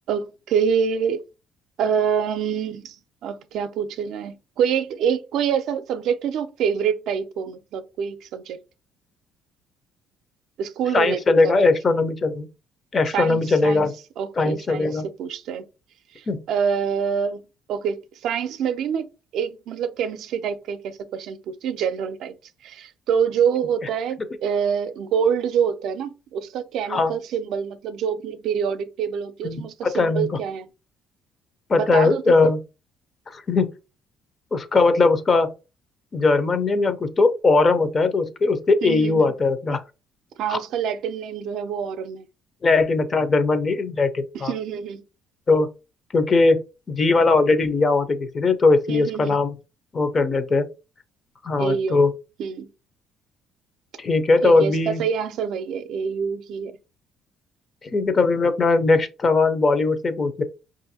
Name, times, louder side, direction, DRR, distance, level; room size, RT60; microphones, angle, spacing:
voice 1, 0.1-1.2 1.8-3.0 3.2-8.6 10.6-11.7 13.1-13.9 14.2-15.7 16.2-17.4 17.7-22.3 22.6-30.7 31.7-32.5 38.8-39.3 40.4-42.3 44.3-45.0 48.9-49.4 51.6-52.0 52.4-52.7 54.4-56.7, right 7 dB, 65° right, 0.4 m, -26 dB
voice 2, 10.9-12.5 12.9-13.9 14.4-15.0 16.3-16.4 26.9-27.1 29.4-30.4 31.7-32.6 33.3-33.7 34.5-35.5 36.1-39.8 40.5-40.6 42.6-44.5 45.5-45.7 46.1-46.6 46.9-49.5 49.9-50.7 51.4-52.1 54.0-55.0 57.9-60.4, left 3 dB, 30° left, 0.6 m, -20 dB
5.4 x 2.5 x 2.7 m
cardioid pair, 130°, 0 cm